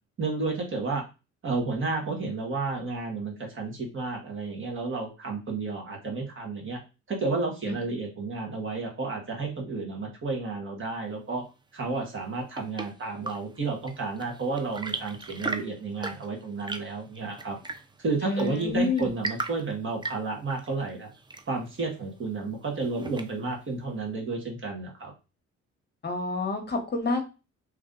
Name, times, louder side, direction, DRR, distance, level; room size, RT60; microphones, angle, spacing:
voice 1, 0.2-1.0 1.4-6.8 7.1-11.4 11.7-17.6 18.0-21.1 21.5-25.1, right 3 dB, 40° right, 0 dB, 1.5 m, -31 dB
Chirp tweet / Engine / Tap, 12.1-23.6, right 3 dB, 15° right, 0.5 m, -39 dB
voice 2, 18.2-19.1 26.0-27.2, left 2 dB, 35° left, 4 dB, 1.1 m, -28 dB
3.1 x 2.6 x 3.8 m, 0.29 s
cardioid pair, 90°, 30 cm